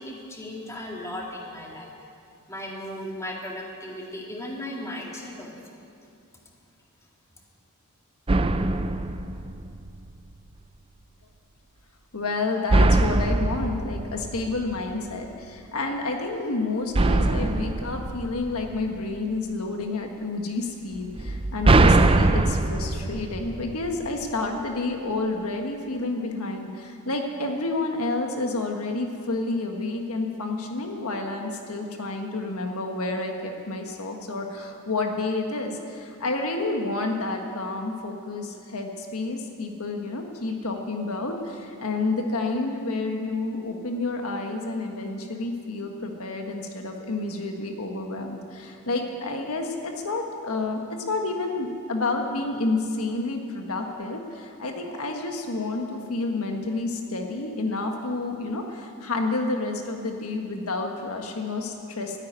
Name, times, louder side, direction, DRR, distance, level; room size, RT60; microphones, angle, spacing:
voice 1, 0.0-2.0 2.5-5.8, left 1 dB, 15° left, -1 dB, 2.1 m, -36 dB
sound 1, 8.3-10.2 12.7-15.1 16.9-19.2 21.2-24.2, right 2 dB, 25° right, 0.5 m, -22 dB
voice 2, 12.1-50.8 51.1-62.2, left 2 dB, 75° left, 3 dB, 1.5 m, -29 dB
13.5 x 10.5 x 9.6 m, 2.5 s
head